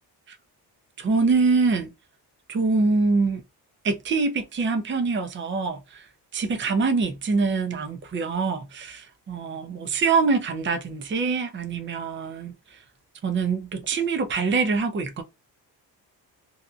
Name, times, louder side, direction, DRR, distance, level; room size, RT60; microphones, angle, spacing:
voice 1, 1.0-1.9 2.5-3.4 3.8-6.0 6.3-12.5 13.2-15.2, right 4 dB, 30° right, 0.6 m, -24 dB
2.8 x 2.4 x 2.4 m
cardioid pair, 130°, 40 cm